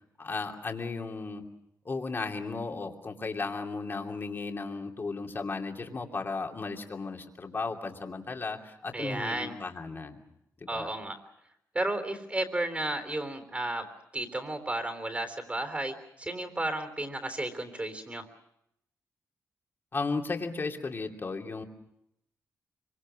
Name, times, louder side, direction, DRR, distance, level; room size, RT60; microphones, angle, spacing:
voice 1, 0.2-1.4 1.8-10.2 10.6-10.9 19.9-21.6, left 4 dB, 35° left, 2 dB, 2.7 m, -35 dB
voice 2, 8.9-9.6 10.7-11.2 11.7-13.9 14.1-18.3, right 1 dB, 20° right, 7 dB, 3.5 m, -33 dB
25.5 x 24.5 x 6.3 m, 0.80 s
cardioid pair, 105°, 6 cm